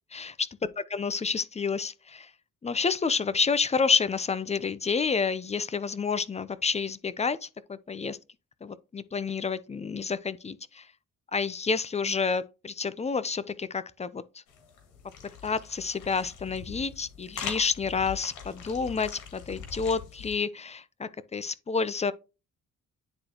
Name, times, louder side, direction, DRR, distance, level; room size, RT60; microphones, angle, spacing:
voice 1, 0.1-0.5 0.9-2.3 2.6-8.2 8.6-10.9 11.3-14.2 15.4-22.1, left 5 dB, 20° left, 0.6 m, -29 dB
sound 1, 14.5-20.4, left 7 dB, 90° left, 2.1 m, -42 dB
9.8 x 3.8 x 2.9 m
cardioid pair, 90°, 30 cm